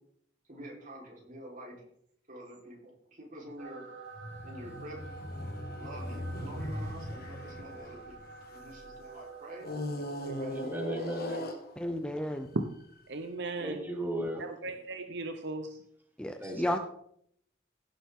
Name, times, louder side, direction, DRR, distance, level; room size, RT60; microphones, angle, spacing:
voice 1, 0.5-1.8 2.3-3.8 4.4-5.2 5.8-8.2 8.5-9.7 10.2-10.6, right 1 dB, 45° right, -3 dB, 4.0 m, -47 dB
sound 1, 3.6-10.7, right 4 dB, 90° right, 2.9 m, -49 dB
sound 2, 4.2-8.9 9.6-12.1 12.8-12.9, left 1 dB, 55° left, 1.6 m, -39 dB
voice 2, 10.5-11.6 13.6-14.4 16.4-16.8, right 1 dB, 10° right, 1 dB, 1.8 m, -36 dB
voice 3, 11.8-12.5 16.2-16.8, left 1 dB, 5° left, 6 dB, 0.6 m, -32 dB
voice 4, 13.1-13.9 14.4-15.8, right 2 dB, 65° right, 6 dB, 0.8 m, -36 dB
16.5 x 7.2 x 3.7 m, 0.69 s
head